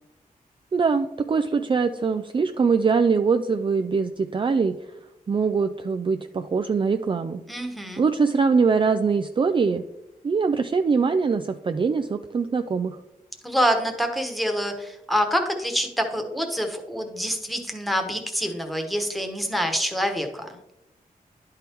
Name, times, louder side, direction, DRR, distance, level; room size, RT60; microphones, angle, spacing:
voice 1, 0.7-4.7 5.3-7.4 8.0-9.8 10.2-13.0, right 5 dB, 35° right, 7 dB, 0.4 m, -22 dB
voice 2, 7.5-8.0 13.4-20.5, equal, ahead, 4 dB, 1.2 m, -26 dB
10.5 x 4.5 x 3.5 m, 0.89 s
wide cardioid pair, 90°, 15 cm